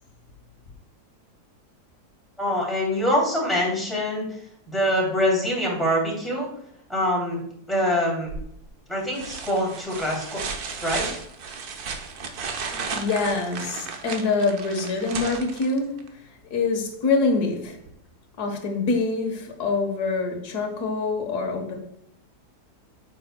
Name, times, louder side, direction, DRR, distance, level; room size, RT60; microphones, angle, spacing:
voice 1, 2.4-4.4 4.7-6.5 6.9-7.4 7.7-8.3 8.9-10.4 10.8-11.0, equal, ahead, -4 dB, 2.8 m, -24 dB
sound 1, 8.3-8.7 9.1-16.1 17.9-18.0, right 5 dB, 70° right, 1.4 m, -34 dB
voice 2, 12.6-17.8 18.4-21.8, left 3 dB, 75° left, 3 dB, 1.7 m, -25 dB
8.7 x 7.4 x 2.2 m, 0.72 s
omnidirectional pair, 1.7 m